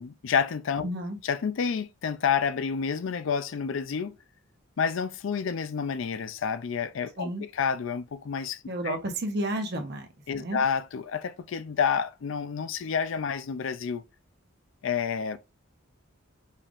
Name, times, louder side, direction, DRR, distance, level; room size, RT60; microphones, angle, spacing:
voice 1, 0.0-0.9 1.2-4.2 4.8-9.0 10.3-14.0 14.8-15.4, left 6 dB, 65° left, 0.4 m, -29 dB
voice 2, 0.8-1.2 7.2-7.4 8.7-10.1 10.3-10.6, right 1 dB, 50° right, 0.9 m, -31 dB
5.5 x 3.4 x 2.4 m
head